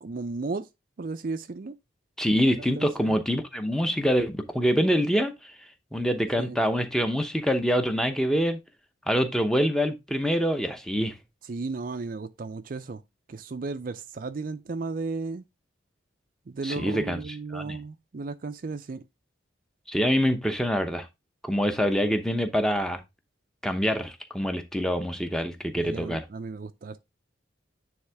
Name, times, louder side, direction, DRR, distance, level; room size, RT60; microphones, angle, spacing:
voice 1, 0.0-0.7 1.0-1.8 2.8-3.2 6.4-6.6 11.5-13.0 13.3-15.4 16.5-19.0 25.7-27.0, right 3 dB, 45° right, 0.4 m, -34 dB
voice 2, 2.2-5.3 5.9-8.6 9.1-11.1 16.6-17.2 17.5-17.8 19.9-21.1 21.4-23.0 23.6-26.2, equal, 5° left, 0.7 m, -25 dB
9.6 x 3.5 x 3.4 m
head